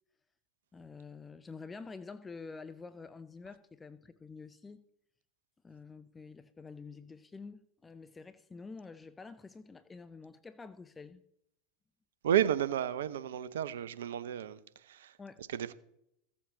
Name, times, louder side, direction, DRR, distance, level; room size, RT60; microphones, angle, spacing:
voice 1, 0.7-4.8 5.6-11.2 15.2-15.4, left 4 dB, 15° left, 0.6 m, -48 dB
voice 2, 12.2-15.2 15.5-15.7, right 10 dB, 70° right, 0.6 m, -32 dB
15.0 x 7.3 x 4.0 m
hypercardioid pair, 85°, 0 cm